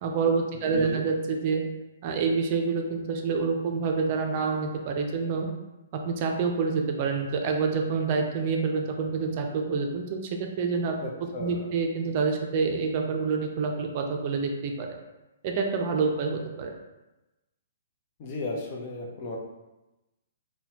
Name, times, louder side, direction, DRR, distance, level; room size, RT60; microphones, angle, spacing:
voice 1, 0.0-1.6 2.0-5.5 5.9-10.2 10.6-10.9 11.4-14.9 15.4-16.7, right 4 dB, 45° right, 2 dB, 0.5 m, -27 dB
voice 2, 0.5-1.0 11.0-11.7 18.2-19.4, left 2 dB, 40° left, -1 dB, 0.7 m, -35 dB
4.0 x 2.2 x 2.8 m, 1.0 s
hypercardioid pair, 135°, 0 cm